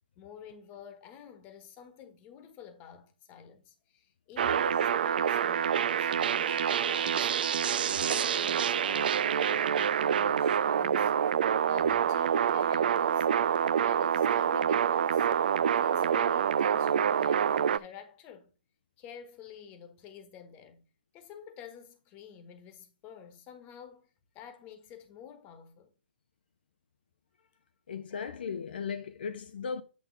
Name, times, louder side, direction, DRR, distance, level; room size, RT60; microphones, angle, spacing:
voice 1, 0.2-7.3 7.8-11.2 11.6-18.5 19.0-20.8 21.1-24.1 24.3-25.9, left 8 dB, 25° left, 1.3 m, -49 dB
sound 1, 4.4-17.8, right 8 dB, 60° right, 0.4 m, -27 dB
voice 2, 27.9-29.8, left 6 dB, 65° left, 0.6 m, -36 dB
8.5 x 3.5 x 5.4 m
hypercardioid pair, 135°, 6 cm